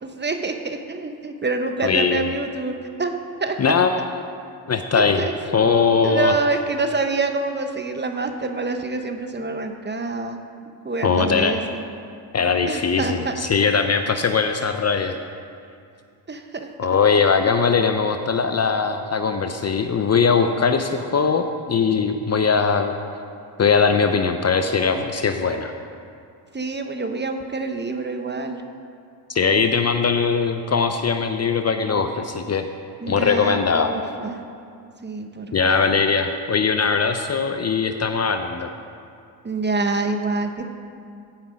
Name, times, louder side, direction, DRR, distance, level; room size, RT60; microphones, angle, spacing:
voice 1, 0.0-3.1 3.4-3.8 4.9-5.3 6.0-10.4 10.8-11.8 12.7-13.4 16.3-16.7 26.5-28.6 33.0-34.4 35.0-35.5 39.4-40.7, right 3 dB, 25° right, 6 dB, 0.9 m, -26 dB
voice 2, 1.8-2.3 3.6-4.2 4.7-5.2 5.5-6.3 11.0-11.6 12.3-15.2 16.8-23.0 23.6-25.7 29.3-32.7 33.1-33.9 35.5-38.7, left 5 dB, 35° left, 7 dB, 0.6 m, -20 dB
14.5 x 5.4 x 5.1 m, 2.4 s
cardioid pair, 70°, 45 cm